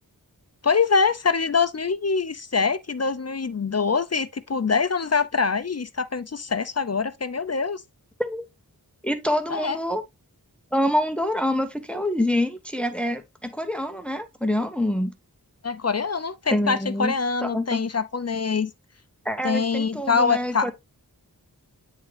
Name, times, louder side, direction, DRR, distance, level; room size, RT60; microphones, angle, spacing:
voice 1, 0.6-7.8 9.5-9.8 15.6-18.7 19.4-20.7, left 5 dB, 40° left, 0.6 m, -24 dB
voice 2, 9.0-10.0 10.7-15.1 16.5-17.1 17.4-17.8 19.2-20.7, left 1 dB, 5° left, 1.0 m, -26 dB
9.1 x 3.7 x 3.4 m
wide cardioid pair, 45°, 37 cm